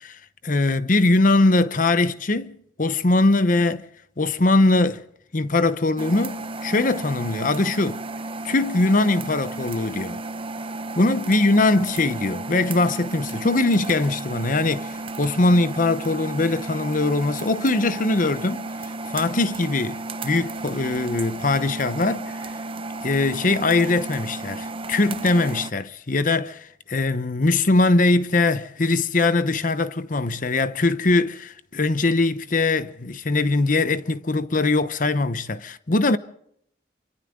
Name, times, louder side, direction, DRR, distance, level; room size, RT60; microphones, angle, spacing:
voice 1, 0.0-3.8 4.2-5.0 5.3-8.0 8.4-10.2 11.0-18.7 19.1-22.4 23.0-36.2, left 2 dB, 50° left, 0.9 m, -21 dB
sound 1, 6.0-25.7, right 2 dB, 30° right, 0.8 m, -33 dB
28.0 x 25.0 x 3.8 m
head